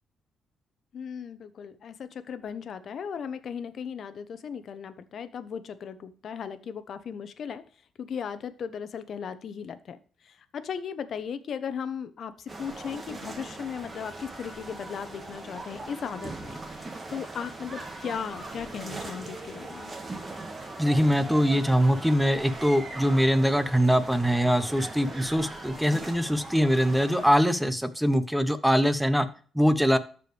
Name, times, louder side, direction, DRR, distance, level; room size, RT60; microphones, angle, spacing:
voice 1, 0.9-7.6 8.0-10.0 10.2-19.9, left 7 dB, 60° left, 12 dB, 0.9 m, -37 dB
sound 1, 12.5-27.4, right 2 dB, 30° right, 1.9 m, -40 dB
voice 2, 20.8-29.3 29.5-30.0, equal, ahead, 11 dB, 1.0 m, -23 dB
13.0 x 4.8 x 3.4 m, 0.41 s
cardioid pair, 90°, 0 cm